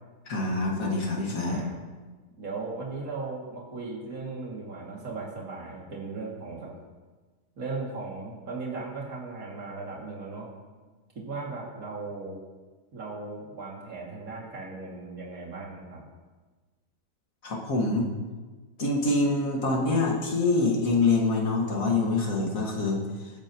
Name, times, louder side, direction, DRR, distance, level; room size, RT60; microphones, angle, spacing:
voice 1, 0.3-1.6 17.4-18.1 18.8-23.0, left 3 dB, 55° left, -1 dB, 2.3 m, -25 dB
voice 2, 2.4-6.7 7.6-10.5 11.1-12.4 12.9-16.0, right 3 dB, 55° right, -3 dB, 2.9 m, -37 dB
20.5 x 8.9 x 3.0 m, 1.3 s
omnidirectional pair, 1.7 m